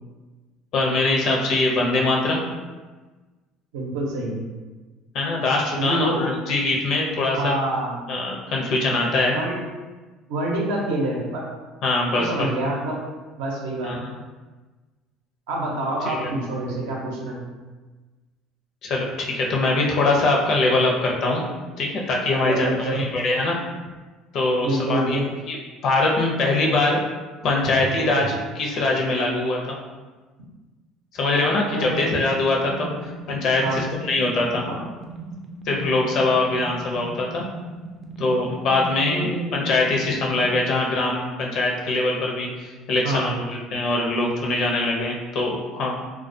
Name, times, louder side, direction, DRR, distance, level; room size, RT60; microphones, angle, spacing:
voice 1, 0.7-2.4 5.1-7.5 8.1-9.4 11.8-12.5 13.8-14.1 16.0-16.3 18.8-21.4 21.8-23.6 24.3-25.2 25.5-25.6 25.8-27.0 27.4-29.6 31.1-34.6 35.7-37.4 38.2-46.1, left 2 dB, 60° left, -1 dB, 0.5 m, -23 dB
voice 2, 3.7-4.4 5.8-6.2 7.3-8.0 9.3-9.6 10.3-11.4 12.1-13.0 13.4-14.0 15.5-17.5 22.4-23.0 24.6-25.3 31.7-32.1 33.6-33.8 34.7-34.8 39.1-39.7 43.0-43.3, right 1 dB, 90° right, -2 dB, 0.6 m, -26 dB
sound 1, 31.7-40.6, right 2 dB, 25° right, 0.4 m, -38 dB
2.2 x 2.2 x 2.6 m, 1.3 s
supercardioid pair, 105°, 0 cm